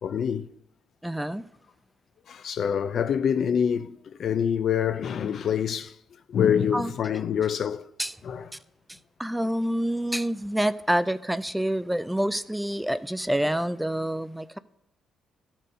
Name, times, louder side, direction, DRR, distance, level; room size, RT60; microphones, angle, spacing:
voice 1, 0.0-0.5 2.3-5.9 6.3-7.9 8.2-8.5, left 8 dB, 60° left, 0.5 m, -26 dB
voice 2, 1.0-1.4 6.7-6.9 8.0-8.1 8.5-8.6 8.9-14.6, right 1 dB, 5° right, 0.3 m, -27 dB
13.5 x 4.5 x 5.0 m
cardioid pair, 90°, 0 cm